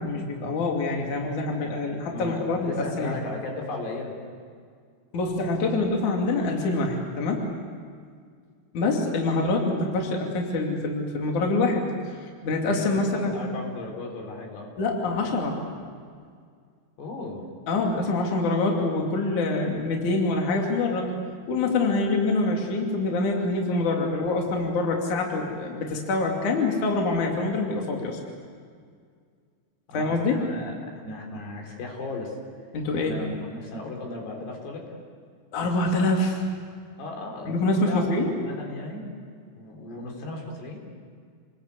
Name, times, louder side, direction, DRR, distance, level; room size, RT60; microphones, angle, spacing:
voice 1, 0.0-3.1 5.1-7.4 8.7-11.9 12.4-13.3 14.8-15.6 17.7-21.1 21.5-28.2 29.9-30.4 32.7-33.1 35.5-36.4 37.5-38.3, left 2 dB, 50° left, 1 dB, 3.8 m, -25 dB
voice 2, 2.1-4.1 12.7-14.7 17.0-17.5 29.9-32.4 32.9-35.0 37.0-38.0 38.3-39.0 39.6-40.8, left 2 dB, 85° left, 1 dB, 6.0 m, -36 dB
29.5 x 20.0 x 8.3 m, 2.1 s
omnidirectional pair, 4.7 m